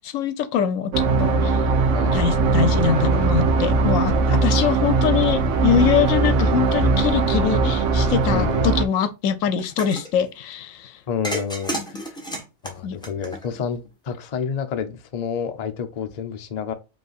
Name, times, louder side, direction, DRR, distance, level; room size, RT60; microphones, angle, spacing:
voice 1, 0.0-1.7 2.1-11.0 11.7-11.8 12.8-13.0, left 8 dB, 80° left, 1.0 m, -23 dB
sound 1, 0.9-8.9, right 4 dB, 65° right, 1.0 m, -20 dB
voice 2, 1.9-2.4 3.8-4.2 8.3-8.7 11.1-12.2 12.6-16.7, left 7 dB, 45° left, 0.6 m, -29 dB
sound 2, 9.6-10.1 11.2-13.7, equal, 5° left, 1.1 m, -31 dB
5.4 x 3.2 x 2.4 m
omnidirectional pair, 1.4 m